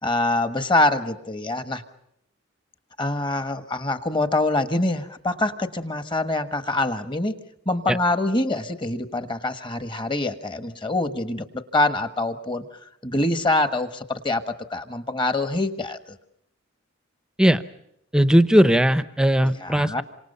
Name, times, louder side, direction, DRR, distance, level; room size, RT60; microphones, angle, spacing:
voice 1, 0.0-1.8 3.0-7.4 7.6-12.7 13.0-16.2 19.6-20.0, left 2 dB, 20° left, 9 dB, 1.3 m, -25 dB
voice 2, 18.1-20.0, equal, 5° right, 12 dB, 0.8 m, -18 dB
28.0 x 26.0 x 5.5 m, 0.79 s
head